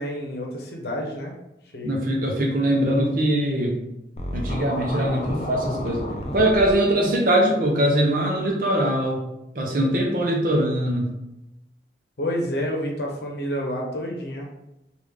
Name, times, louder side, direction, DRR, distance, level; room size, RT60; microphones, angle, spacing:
voice 1, 0.0-1.3 1.7-2.0 12.2-14.5, equal, 70° left, 0 dB, 0.8 m, -29 dB
voice 2, 1.8-3.8 4.3-6.1 6.3-9.2 9.5-11.1, right 1 dB, 50° right, 0 dB, 0.7 m, -22 dB
Scratching (performance technique), 4.2-6.7, left 1 dB, 35° left, 0.5 m, -31 dB
3.5 x 2.4 x 3.4 m, 0.91 s
head